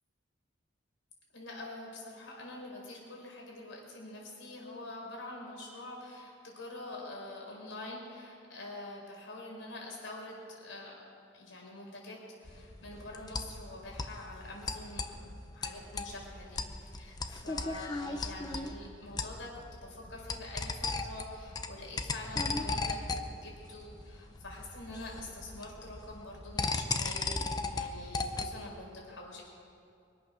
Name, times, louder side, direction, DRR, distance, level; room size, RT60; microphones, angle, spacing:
voice 1, 1.3-11.0 11.3-29.4, left 2 dB, 85° left, -2 dB, 4.5 m, -46 dB
sound 1, 12.5-28.7, left 3 dB, 20° left, 0.7 m, -37 dB
23.5 x 8.6 x 6.2 m, 2.5 s
head